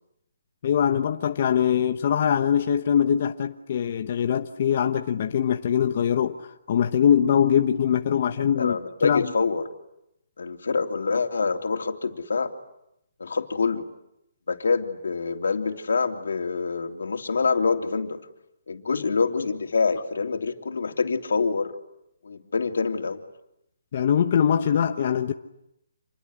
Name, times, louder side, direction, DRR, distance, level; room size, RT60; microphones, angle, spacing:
voice 1, 0.6-8.8 9.0-9.3 23.9-25.3, left 8 dB, 35° left, 1.0 m, -22 dB
voice 2, 8.6-9.6 10.4-12.5 13.2-13.9 14.5-18.2 18.7-21.7 22.2-23.2, left 4 dB, 85° left, 3.1 m, -26 dB
28.0 x 22.0 x 9.7 m
hypercardioid pair, 175°, 0 cm